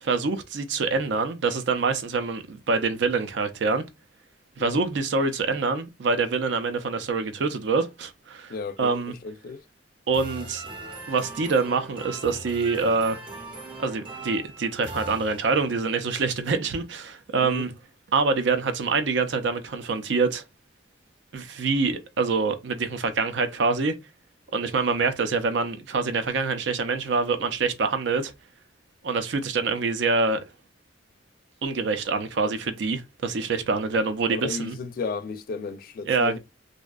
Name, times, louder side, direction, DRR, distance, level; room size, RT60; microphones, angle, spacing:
voice 1, 0.0-3.8 4.6-9.1 10.1-10.7 11.1-13.2 13.8-17.7 18.1-20.4 21.3-23.9 24.5-28.3 29.0-30.4 31.6-34.8 36.0-36.4, right 4 dB, 70° right, 0.4 m, -25 dB
voice 2, 8.5-9.6 17.4-17.6 34.3-36.4, left 4 dB, 50° left, 0.3 m, -34 dB
sound 1, 10.1-15.9, right 2 dB, 25° right, 0.6 m, -40 dB
2.5 x 2.1 x 2.3 m
head